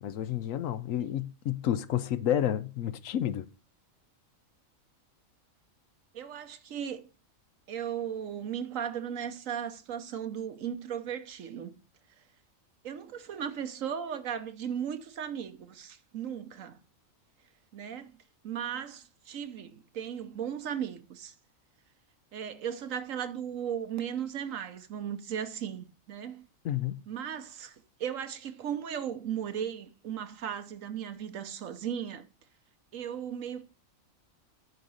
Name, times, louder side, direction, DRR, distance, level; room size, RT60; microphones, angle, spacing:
voice 1, 0.0-3.5 26.6-27.0, left 11 dB, 75° left, 1.0 m, -30 dB
voice 2, 6.1-7.1 7.7-11.8 12.8-16.8 17.7-18.1 18.4-21.3 22.3-26.4 27.1-32.2 32.9-33.6, right 8 dB, 75° right, 1.2 m, -36 dB
9.6 x 4.0 x 6.3 m
omnidirectional pair, 1.4 m